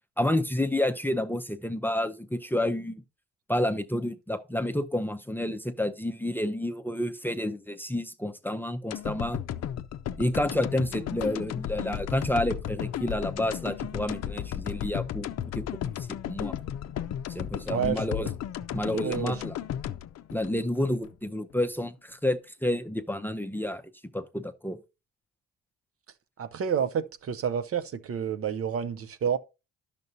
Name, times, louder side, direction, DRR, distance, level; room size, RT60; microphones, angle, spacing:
voice 1, 0.2-3.0 3.5-9.4 10.2-16.6 17.3-18.3 18.7-19.6 20.3-23.8 24.1-24.8, left 1 dB, 5° left, 0.6 m, -30 dB
sound 1, 8.9-21.1 21.5-21.6, left 10 dB, 60° left, 0.5 m, -34 dB
voice 2, 17.7-18.3 18.9-19.3 26.4-29.4, right 7 dB, 50° right, 0.7 m, -29 dB
10.5 x 6.7 x 2.7 m
cardioid pair, 90°, 30 cm